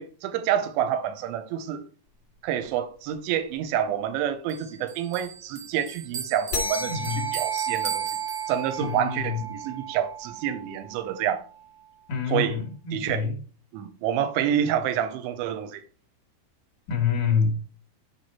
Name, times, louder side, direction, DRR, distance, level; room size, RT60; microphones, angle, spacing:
voice 1, 0.0-1.8 2.4-8.1 8.5-11.4 12.3-12.6 12.9-13.3 13.7-15.8, right 10 dB, 75° right, 3.0 m, -28 dB
Bell, 4.5-9.0, right 8 dB, 45° right, 1.9 m, -37 dB
sound 1, 6.5-11.4, right 4 dB, 35° left, 2.1 m, -33 dB
voice 2, 6.9-7.3 8.8-9.4 12.1-13.3 16.9-17.5, left 6 dB, 55° left, 2.5 m, -26 dB
11.5 x 4.8 x 4.3 m
omnidirectional pair, 5.7 m